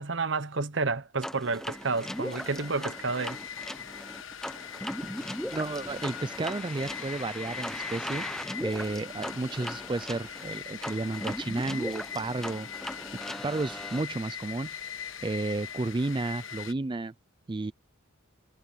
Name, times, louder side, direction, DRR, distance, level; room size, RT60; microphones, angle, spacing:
voice 1, 0.0-3.4, right 4 dB, 65° right, 1.0 m, -30 dB
sound 1, 1.2-14.0, equal, ahead, 0.8 m, -38 dB
sound 2, 1.6-16.7, left 8 dB, 75° left, 1.2 m, -42 dB
voice 2, 5.5-8.3 8.6-13.0 13.4-14.9 15.2-17.1 17.5-17.7, right 2 dB, 25° right, 0.4 m, -32 dB
head